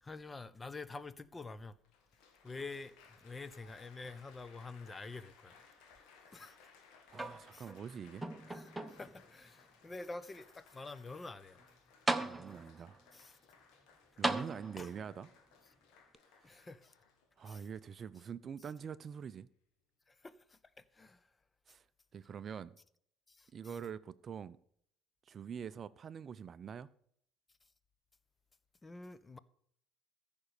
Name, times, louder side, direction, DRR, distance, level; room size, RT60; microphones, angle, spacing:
voice 1, 0.0-1.8 2.4-5.6 6.3-6.6 7.5-7.7 8.5-11.6 13.1-13.4 14.8-14.9 16.4-16.9 17.5-17.7 20.1-21.3 23.3-23.9 28.8-29.4, left 3 dB, 20° left, 0.8 m, -48 dB
Applause, 1.8-17.8 18.5-18.8, left 5 dB, 60° left, 2.1 m, -63 dB
sound 1, 7.1-7.8 8.2-9.2 9.9-10.0 11.6-11.7 12.1-12.8 14.2-15.1 16.1-16.2, right 2 dB, 10° right, 1.0 m, -37 dB
voice 2, 7.1-8.3 12.1-13.0 14.2-15.3 16.4-16.6 17.4-19.5 21.7-21.8 22.1-22.7 23.5-24.6 25.3-26.9, right 7 dB, 40° right, 0.5 m, -45 dB
14.5 x 5.3 x 6.7 m
figure-of-eight pair, 60°, 0 cm